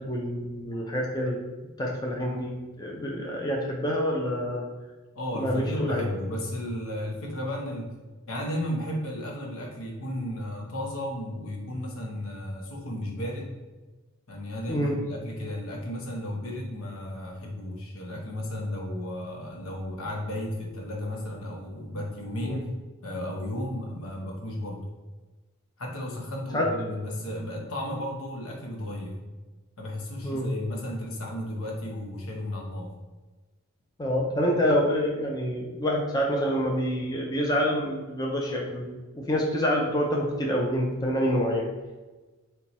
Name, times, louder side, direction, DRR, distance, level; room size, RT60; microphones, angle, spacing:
voice 1, 0.0-1.4 1.8-4.7 5.4-6.0 14.7-14.9 22.5-22.6 26.5-26.7 30.2-30.5 34.0-38.9 39.1-41.7, equal, 20° left, -2 dB, 0.5 m, -27 dB
voice 2, 5.1-7.9 8.3-13.5 14.3-22.7 23.0-24.9 25.8-29.2 29.8-32.9, left 1 dB, 75° left, 0 dB, 0.9 m, -34 dB
4.3 x 2.2 x 4.0 m, 1.2 s
head